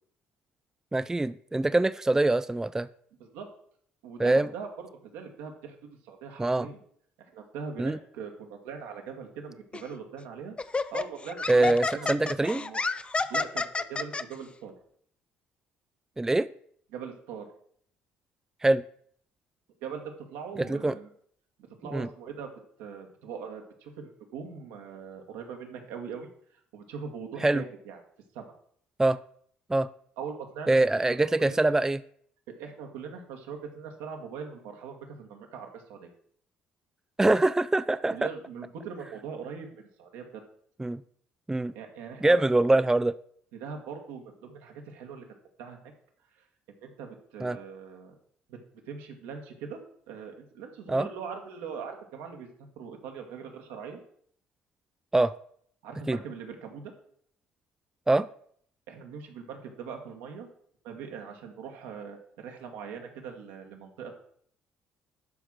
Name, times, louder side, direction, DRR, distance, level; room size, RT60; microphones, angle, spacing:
voice 1, 0.9-2.9 4.2-4.5 6.4-6.7 7.8-8.0 11.5-12.6 16.2-16.5 18.6-18.8 20.7-20.9 21.9-22.1 27.4-27.6 29.0-29.2 29.7-29.9 30.7-32.0 37.2-38.2 40.8-41.0 41.5-41.7 42.2-43.1 47.4-47.6 50.9-51.1 55.1-55.3 56.1-56.2 58.1-58.3, right 2 dB, 10° right, 14 dB, 0.4 m, -24 dB
voice 2, 4.0-4.9 5.1-6.8 7.3-10.6 10.9-12.8 13.2-14.7 16.9-17.5 19.8-21.1 21.8-22.5 22.8-26.3 26.7-28.0 28.3-28.4 30.2-31.6 32.5-36.1 38.1-40.4 41.7-42.8 43.6-45.3 45.6-45.8 46.7-48.1 48.5-48.6 48.9-49.8 50.1-54.0 55.8-56.9 58.9-60.5 60.8-64.1, right 6 dB, 75° right, 3 dB, 1.9 m, -41 dB
Laughter, 9.7-9.9 10.6-14.2, left 3 dB, 25° left, 0.7 m, -30 dB
12.0 x 4.8 x 6.2 m, 0.63 s
hypercardioid pair, 55°, 4 cm